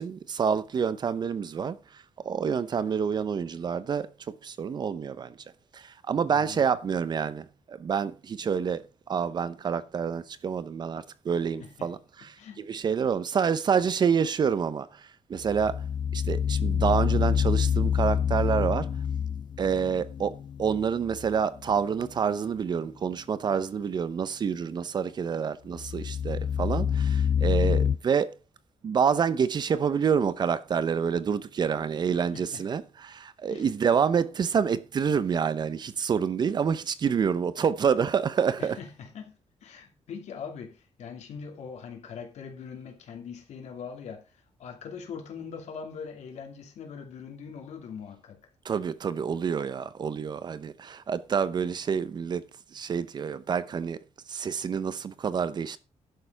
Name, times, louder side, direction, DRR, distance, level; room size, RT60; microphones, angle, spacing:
voice 1, 0.0-5.4 5.7-15.8 16.1-18.9 19.6-28.3 28.8-38.8 48.6-52.4 52.7-54.0 54.3-55.8, right 6 dB, 40° right, 0.7 m, -28 dB
voice 2, 6.3-6.6 11.6-11.9 12.4-12.7 32.1-32.6 33.5-33.7 38.6-48.4, left 6 dB, 75° left, 2.8 m, -42 dB
sound 1, 15.4-21.4 21.6-21.7 25.7-28.0, left 8 dB, 45° left, 0.5 m, -27 dB
11.5 x 6.8 x 4.7 m
wide cardioid pair, 180°, 12 cm